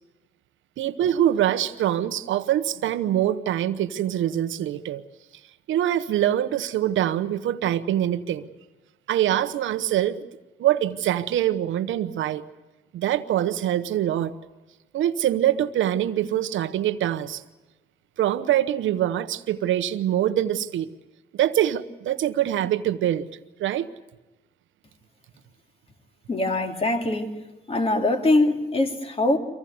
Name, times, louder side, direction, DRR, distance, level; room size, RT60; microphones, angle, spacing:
voice 1, 0.8-5.0 5.7-8.5 9.1-10.2 10.6-12.4 12.9-14.3 14.9-17.4 18.2-20.9 21.3-23.3 23.6-23.9, right 12 dB, 75° right, 10 dB, 1.0 m, -24 dB
voice 2, 26.3-27.3 27.7-29.4, left 2 dB, 30° left, 5 dB, 2.7 m, -22 dB
24.5 x 16.5 x 9.4 m, 1.2 s
cardioid pair, 90°, 20 cm